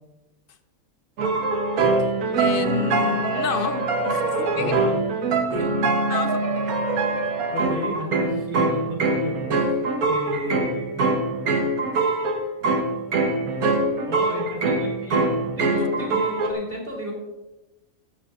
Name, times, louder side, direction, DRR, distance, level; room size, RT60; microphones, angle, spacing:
sound 1, 1.2-16.5, right 3 dB, 85° right, 1.5 m, -23 dB
voice 1, 2.3-4.8 5.5-6.4, left 7 dB, 60° left, 10 dB, 0.6 m, -29 dB
voice 2, 4.5-4.9 7.5-9.6 10.0-11.0 14.1-17.1, equal, 40° right, -3 dB, 3.7 m, -33 dB
15.0 x 11.0 x 2.5 m, 1.0 s
omnidirectional pair, 1.5 m